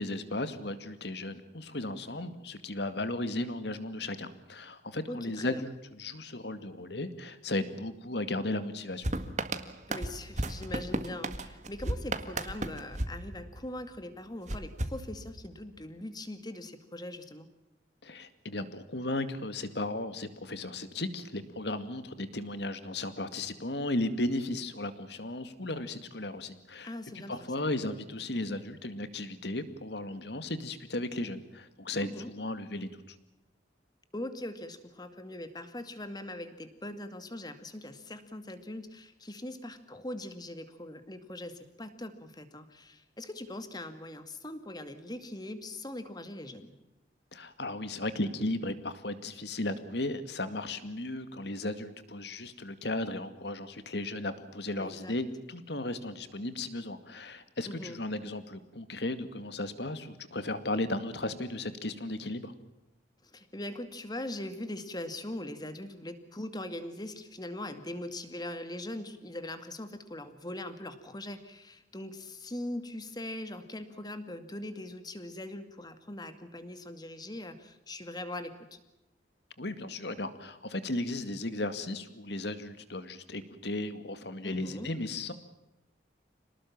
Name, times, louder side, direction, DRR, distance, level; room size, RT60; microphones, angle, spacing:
voice 1, 0.0-9.1 18.0-33.2 47.3-62.5 79.6-85.3, left 2 dB, 65° left, 11 dB, 2.2 m, -35 dB
voice 2, 5.1-5.6 9.9-17.5 26.8-27.3 32.0-32.3 34.1-46.7 54.8-55.2 57.7-58.0 63.2-78.8 84.4-84.9, left 1 dB, 20° left, 10 dB, 2.3 m, -41 dB
sound 1, 9.0-13.9 14.5-15.7, right 1 dB, 40° right, 1.8 m, -35 dB
27.5 x 19.5 x 7.3 m, 0.95 s
head